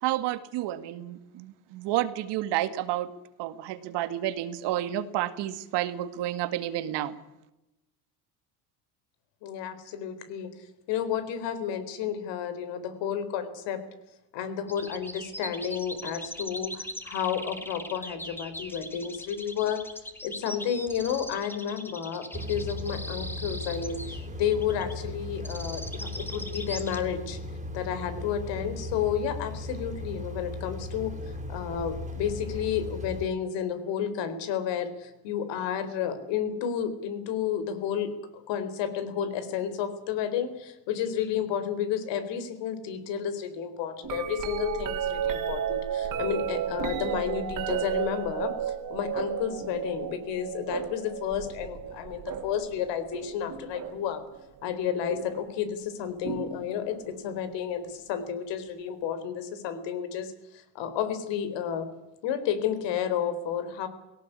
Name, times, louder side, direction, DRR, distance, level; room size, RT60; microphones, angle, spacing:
voice 1, 0.0-3.1 3.4-7.1, right 13 dB, 65° right, 11 dB, 2.2 m, -30 dB
voice 2, 9.4-10.5 10.9-13.8 14.3-27.4 27.7-31.1 31.5-54.2 54.6-61.9 62.2-63.9, left 8 dB, 70° left, 11 dB, 4.2 m, -31 dB
sound 1, 14.7-27.0, left 1 dB, 5° left, 2.9 m, -40 dB
sound 2, 22.3-33.3, left 1 dB, 15° right, 3.9 m, -37 dB
sound 3, 44.0-54.2 55.1-55.5 56.2-57.2 59.0-59.1, right 8 dB, 45° right, 3.4 m, -33 dB
18.0 x 18.0 x 10.0 m, 0.92 s
cardioid pair, 115°, 44 cm